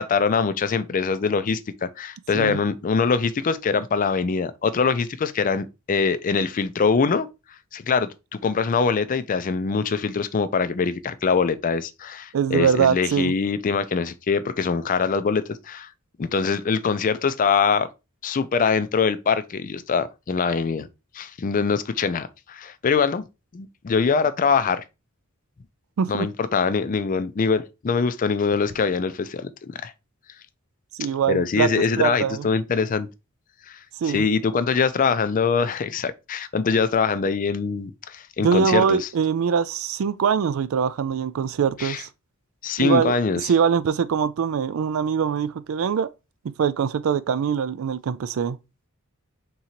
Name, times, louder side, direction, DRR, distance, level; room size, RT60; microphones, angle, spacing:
voice 1, 0.0-7.3 7.7-15.9 16.2-17.9 18.2-20.9 21.1-23.2 23.5-24.8 26.1-29.9 31.3-33.1 33.7-33.8 34.0-39.1 41.8-42.0 42.6-43.5, left 5 dB, 40° left, 0.4 m, -23 dB
voice 2, 12.3-13.3 26.0-26.3 30.9-32.5 34.0-34.3 38.4-42.1 42.8-46.1 46.4-48.6, right 6 dB, 70° right, 0.4 m, -23 dB
3.8 x 2.8 x 4.2 m
head